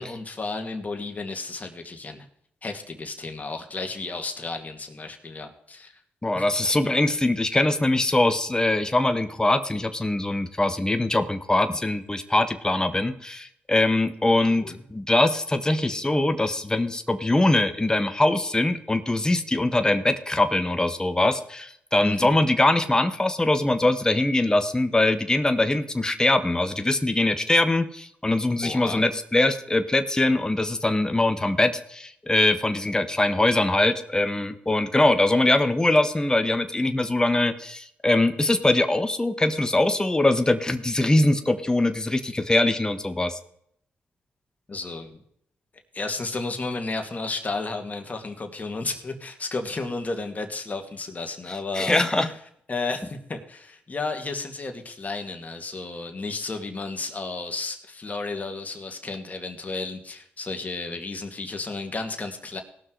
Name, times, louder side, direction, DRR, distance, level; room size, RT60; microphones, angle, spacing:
voice 1, 0.0-2.3 2.6-5.9 6.3-6.5 14.4-14.8 22.0-22.3 28.6-29.0 44.7-45.2 45.9-52.2 52.7-62.6, left 3 dB, 35° left, 4 dB, 2.5 m, -33 dB
voice 2, 6.2-43.4 51.8-52.3, left 2 dB, 15° left, 8 dB, 1.3 m, -22 dB
17.5 x 6.2 x 4.7 m, 0.69 s
cardioid pair, 60°, 4 cm